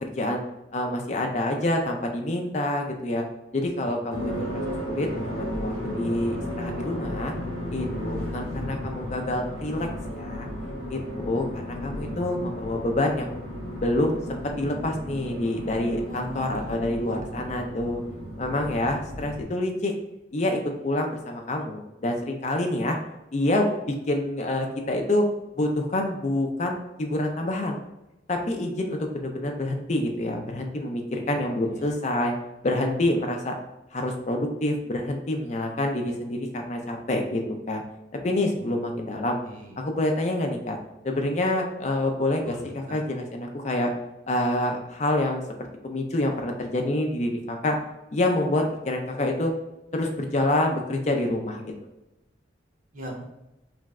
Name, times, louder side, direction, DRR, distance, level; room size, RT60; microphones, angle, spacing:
voice 1, 0.0-0.4 0.7-3.2 3.5-4.5 4.9-7.3 7.7-10.5 10.9-13.3 13.8-18.0 18.4-19.9 20.3-23.0 23.3-25.2 25.6-27.8 28.3-32.3 32.6-33.5 33.9-37.8 38.2-39.4 39.8-40.8 41.0-43.9 44.3-45.4 45.8-47.8 48.1-49.5 49.9-51.7, left 1 dB, 35° left, 3 dB, 0.4 m, -27 dB
voice 2, 4.1-4.5 16.1-17.5 31.1-31.4 31.7-31.8 38.6-38.8 39.4-39.8 42.4-43.0 52.9-53.2, right 1 dB, 40° right, -1 dB, 0.6 m, -40 dB
sound 1, 4.1-19.4, equal, 90° right, 1.5 m, -34 dB
3.3 x 2.0 x 3.5 m, 0.93 s
head